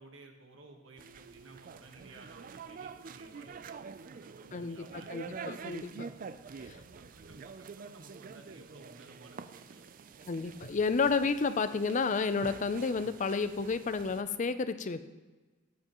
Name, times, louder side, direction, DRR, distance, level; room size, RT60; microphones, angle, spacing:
voice 1, 0.0-5.1 6.6-10.1, right 2 dB, 75° right, 3 dB, 1.4 m, -56 dB
sound 1, 1.0-14.2, right 5 dB, 45° right, 0.4 m, -47 dB
voice 2, 4.5-6.1 10.3-15.0, left 4 dB, 40° left, 12 dB, 0.5 m, -31 dB
15.0 x 9.6 x 3.0 m, 1.2 s
head